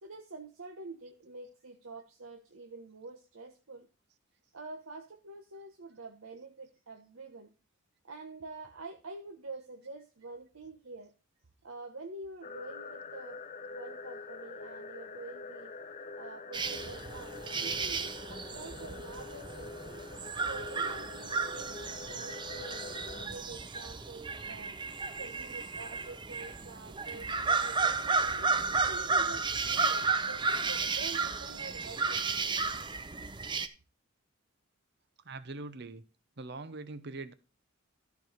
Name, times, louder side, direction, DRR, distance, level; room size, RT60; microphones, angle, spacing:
voice 1, 0.0-3.9 4.5-7.5 8.0-11.1 11.6-13.4 13.7-15.7 16.2-20.0 20.4-24.8 25.1-28.5 28.9-32.6, right 3 dB, 80° right, 1.1 m, -47 dB
sound 1, 12.4-23.3, left 3 dB, 35° left, 0.5 m, -45 dB
sound 2, 16.5-33.7, right 4 dB, 20° right, 0.6 m, -33 dB
voice 2, 35.2-36.0 36.4-37.3, right 3 dB, 55° right, 0.8 m, -42 dB
13.5 x 4.7 x 5.1 m
head